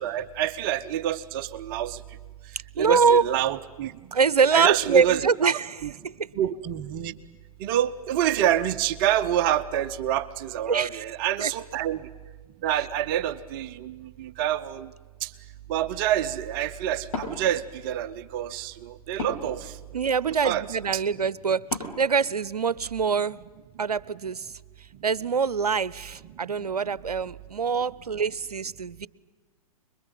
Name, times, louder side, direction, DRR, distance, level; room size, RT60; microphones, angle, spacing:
voice 1, 0.0-2.0 2.8-3.9 4.5-5.5 5.8-5.9 6.4-7.1 7.6-12.0 12.6-14.9 15.2-15.3 15.7-19.7 20.3-20.6 20.9-21.0, right 11 dB, 35° right, 11 dB, 0.8 m, -27 dB
voice 2, 2.8-3.2 4.1-5.8 6.0-6.3 10.7-11.0 11.4-11.5 19.9-21.6 22.0-23.4 23.8-24.5 25.0-29.1, right 5 dB, 80° right, 20 dB, 0.7 m, -24 dB
Wood, 17.0-23.1, left 3 dB, 60° left, 5.7 m, -40 dB
25.0 x 22.0 x 9.1 m, 1.3 s
figure-of-eight pair, 115°, 20 cm